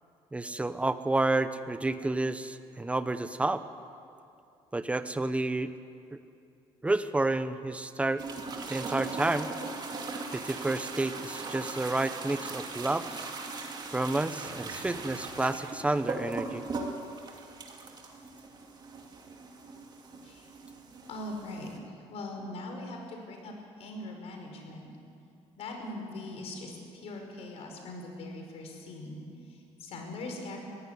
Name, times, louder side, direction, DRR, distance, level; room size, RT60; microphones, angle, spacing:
voice 1, 0.3-3.6 4.7-5.7 6.1-6.2 6.8-8.3 8.7-9.5 10.3-13.3 13.9-16.6, right 2 dB, 10° right, 11 dB, 1.0 m, -30 dB
sound 1, 8.2-21.8, right 3 dB, 40° right, 2.7 m, -39 dB
voice 2, 20.8-21.7 22.1-24.9 25.6-30.6, left 2 dB, 65° left, 2 dB, 5.3 m, -41 dB
22.0 x 16.0 x 9.6 m, 2.6 s
cardioid pair, 120°, 11 cm